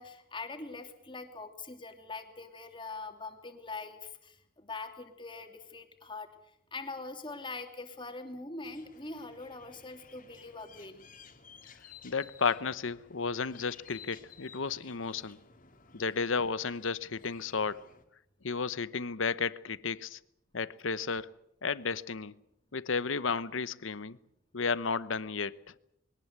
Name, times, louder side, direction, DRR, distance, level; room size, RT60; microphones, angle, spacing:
voice 1, 0.0-6.3 6.7-11.0, left 3 dB, 25° left, 2.9 m, -43 dB
sound 1, 8.6-18.0, left 6 dB, 40° left, 2.6 m, -56 dB
voice 2, 12.0-15.4 15.9-17.9 18.4-20.2 20.5-21.3 21.6-22.3 22.7-24.2 24.5-25.6, left 5 dB, 70° left, 0.9 m, -33 dB
22.5 x 18.5 x 8.2 m
head